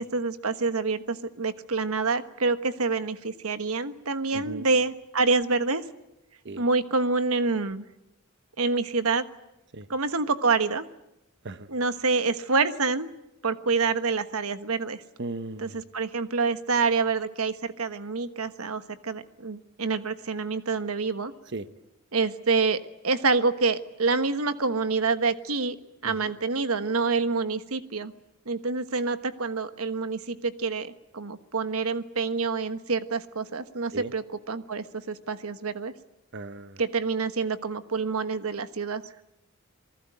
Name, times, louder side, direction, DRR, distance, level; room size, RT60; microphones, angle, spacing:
voice 1, 0.0-5.8 6.6-7.8 8.6-9.2 9.9-10.9 11.7-13.1 13.4-15.0 15.6-21.3 22.1-25.7 26.0-28.1 28.5-35.9 36.8-39.0, right 4 dB, 85° right, 11 dB, 1.3 m, -27 dB
voice 2, 4.3-4.7 6.4-6.6 9.7-9.9 11.4-11.7 15.2-15.8 21.5-21.6 26.0-26.3 33.9-34.1 36.3-36.8, right 2 dB, 55° right, 11 dB, 1.1 m, -37 dB
28.0 x 19.5 x 9.2 m, 0.89 s
head